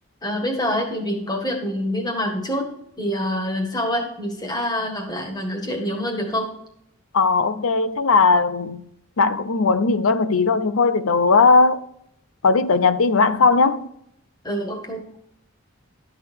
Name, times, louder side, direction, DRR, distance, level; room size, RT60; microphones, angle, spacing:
voice 1, 0.2-2.7 3.0-6.5 14.4-15.0, equal, 20° left, 1.8 m, -26 dB
voice 2, 7.1-8.8 9.2-11.8 12.4-13.8, left 4 dB, 80° left, 0.6 m, -18 dB
12.0 x 6.6 x 4.6 m
head